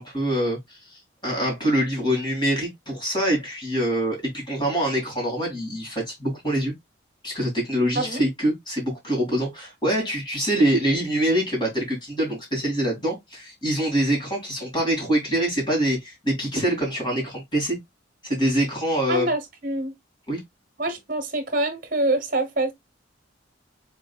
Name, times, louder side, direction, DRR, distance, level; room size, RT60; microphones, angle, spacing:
voice 1, 0.0-6.7 7.2-17.8 18.2-19.3 20.3-20.4, right 1 dB, 25° left, 2.7 m, -25 dB
voice 2, 19.1-19.9 20.8-22.7, right 2 dB, 45° right, 1.2 m, -25 dB
5.2 x 3.8 x 2.4 m
head